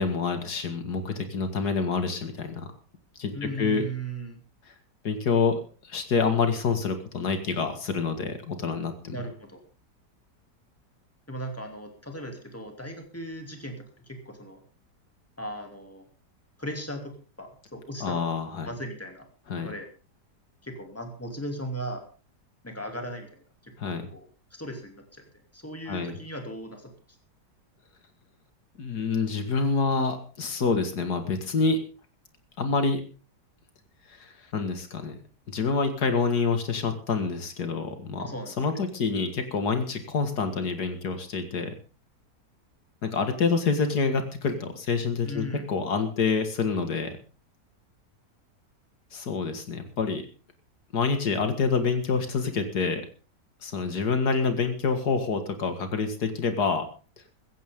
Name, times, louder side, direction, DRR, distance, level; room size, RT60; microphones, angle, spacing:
voice 1, 0.0-2.7 3.2-3.8 5.0-9.2 18.0-18.7 19.5-19.7 23.8-24.1 25.9-26.2 28.8-31.8 32.6-33.0 34.1-35.2 35.5-38.2 38.6-41.7 43.0-47.1 49.1-50.2 50.9-53.0 53.6-56.8, left 4 dB, 70° left, 7 dB, 2.5 m, -27 dB
voice 2, 3.3-4.4 9.1-9.6 11.3-14.6 15.4-16.0 16.6-18.3 18.6-19.3 19.6-19.9 20.6-22.0 22.6-23.7 24.1-25.2 25.5-26.9 38.2-38.5 45.2-45.7, right 1 dB, 10° left, 4 dB, 2.7 m, -37 dB
15.5 x 15.0 x 3.7 m, 0.36 s
omnidirectional pair, 1.8 m